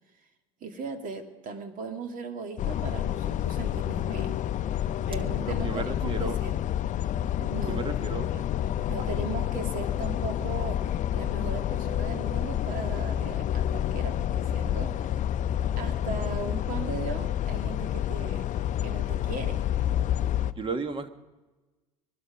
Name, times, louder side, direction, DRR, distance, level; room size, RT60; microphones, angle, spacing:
voice 1, 0.6-4.4 4.7-6.6 7.4-7.8 8.2-8.4 8.9-15.2 15.8-18.5 18.8-19.7, right 4 dB, 50° right, 6 dB, 2.3 m, -38 dB
sound 1, 2.6-20.5, left 11 dB, 45° left, 0.6 m, -29 dB
voice 2, 5.4-6.4 7.7-8.3 20.5-21.1, right 4 dB, 30° right, 9 dB, 1.5 m, -33 dB
22.0 x 12.0 x 5.1 m, 1.2 s
hypercardioid pair, 70°, 18 cm